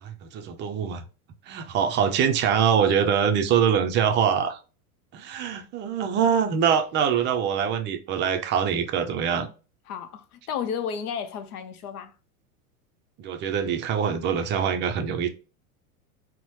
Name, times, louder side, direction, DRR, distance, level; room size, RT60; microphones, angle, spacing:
voice 1, 0.0-1.0 1.5-4.6 5.1-9.5 13.2-15.3, right 7 dB, 25° right, 0.4 m, -24 dB
voice 2, 9.9-12.1, left 7 dB, 90° left, 0.6 m, -32 dB
4.0 x 2.1 x 3.0 m
hypercardioid pair, 110°, 44 cm